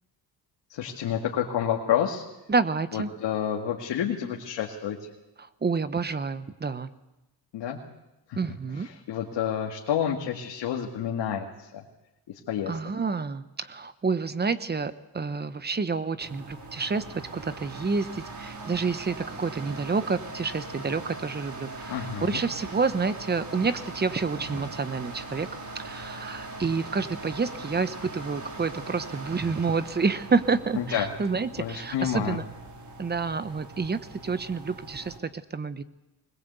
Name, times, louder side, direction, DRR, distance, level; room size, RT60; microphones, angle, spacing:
voice 1, 0.7-2.2 2.9-5.0 7.5-7.8 8.3-8.4 8.8-11.8 12.3-12.7 21.9-22.4 30.8-31.1 31.6-32.4, left 9 dB, 90° left, 0 dB, 2.1 m, -29 dB
voice 2, 2.5-3.1 5.4-6.9 8.4-8.9 12.7-25.5 25.7-32.4 33.0-35.8, right 4 dB, 25° right, 13 dB, 0.9 m, -29 dB
sound 1, 16.2-35.2, right 2 dB, 45° right, 4.1 m, -41 dB
sound 2, 24.2-24.8 26.6-27.3 27.6-27.7, right 3 dB, 85° right, 5.1 m, -45 dB
21.0 x 20.5 x 8.2 m, 0.95 s
cardioid pair, 130°, 42 cm